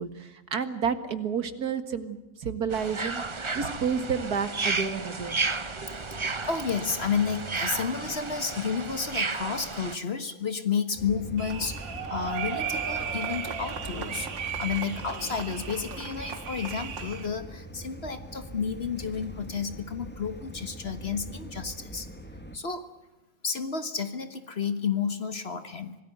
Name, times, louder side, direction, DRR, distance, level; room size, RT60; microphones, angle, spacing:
voice 1, 0.0-5.4 5.8-5.9, right 6 dB, 55° right, 10 dB, 2.2 m, -31 dB
sound 1, 2.7-10.0, right 3 dB, 25° right, 0.6 m, -32 dB
voice 2, 6.5-14.3 14.6-22.1 22.5-22.9 23.4-26.0, left 6 dB, 35° left, 10 dB, 1.5 m, -31 dB
sound 2, 11.0-22.6, equal, 5° left, 1.8 m, -42 dB
sound 3, 11.4-17.3, right 7 dB, 70° right, 2.5 m, -35 dB
26.5 x 19.0 x 8.1 m, 1.0 s
omnidirectional pair, 2.1 m